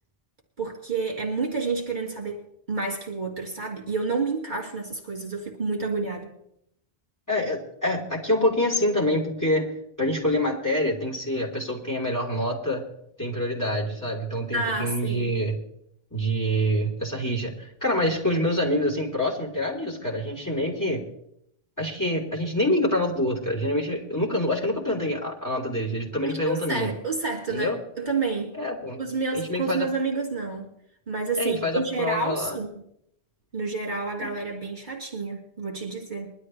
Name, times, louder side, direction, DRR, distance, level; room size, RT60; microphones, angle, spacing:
voice 1, 0.6-6.3 14.5-15.3 26.2-28.6 29.0-30.7 31.1-32.7 33.5-36.3, right 4 dB, 50° right, -1 dB, 2.5 m, -29 dB
voice 2, 7.3-9.7 10.0-12.8 13.2-15.5 16.1-21.0 21.8-26.9 27.5-27.8 28.5-29.0 29.3-29.9 31.4-32.6 34.2-34.3, left 1 dB, 15° left, 0 dB, 3.6 m, -26 dB
21.5 x 12.0 x 3.3 m, 0.75 s
omnidirectional pair, 1.1 m